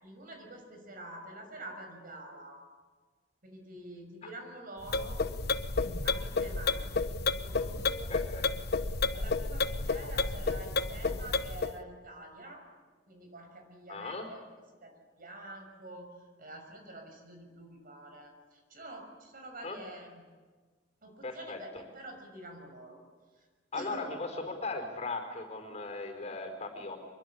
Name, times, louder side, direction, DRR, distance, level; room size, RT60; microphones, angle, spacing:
voice 1, 0.0-2.6 3.4-5.2 6.0-6.9 7.3-8.2 9.1-12.7 13.1-14.4 14.8-16.1 16.4-20.2 21.0-23.0 23.4-23.5 23.7-24.1, right 1 dB, 50° right, 4 dB, 6.0 m, -47 dB
sound 1, 4.8-11.7, left 3 dB, 60° left, 1.1 m, -31 dB
voice 2, 8.1-8.4 13.9-14.3 19.6-19.8 21.2-21.6 23.7-27.0, left 3 dB, 35° left, 4 dB, 4.9 m, -38 dB
25.5 x 23.0 x 8.6 m, 1.4 s
head